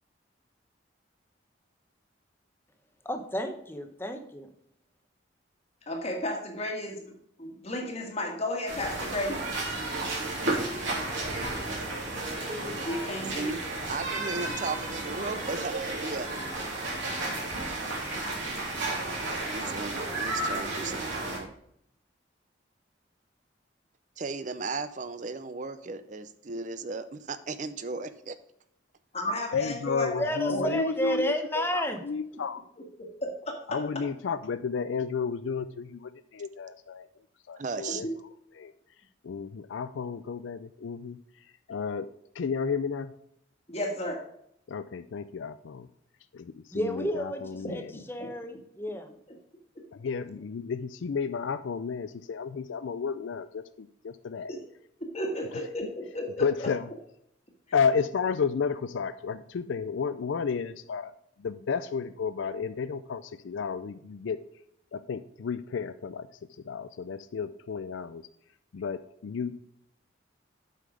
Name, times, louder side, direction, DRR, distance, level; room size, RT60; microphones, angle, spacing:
voice 1, 3.0-4.5 30.2-32.0 46.7-49.1, equal, 10° left, 6 dB, 0.9 m, -31 dB
voice 2, 5.9-7.1 7.4-9.4 12.9-13.5 29.1-30.7 33.0-33.6 37.9-38.1 43.7-44.2 47.6-47.8 48.2-48.3 54.5-54.6 55.1-56.7, left 1 dB, 35° left, 1 dB, 1.6 m, -33 dB
sound 1, 8.7-21.4, right 2 dB, 75° right, 3.4 m, -33 dB
voice 3, 13.9-16.3 19.5-21.5 24.2-28.4 37.6-38.0, right 4 dB, 40° right, 13 dB, 0.5 m, -36 dB
voice 4, 29.5-32.6 33.7-37.1 37.5-38.1 38.5-38.7 39.2-42.1 42.3-43.1 44.7-45.9 46.3-48.0 49.9-54.5 55.8-55.9 56.4-56.9 57.7-61.1 61.4-64.4 64.9-66.3 66.7-68.3 68.7-69.6, left 6 dB, 75° left, 12 dB, 0.4 m, -32 dB
8.2 x 5.8 x 4.9 m, 0.72 s
head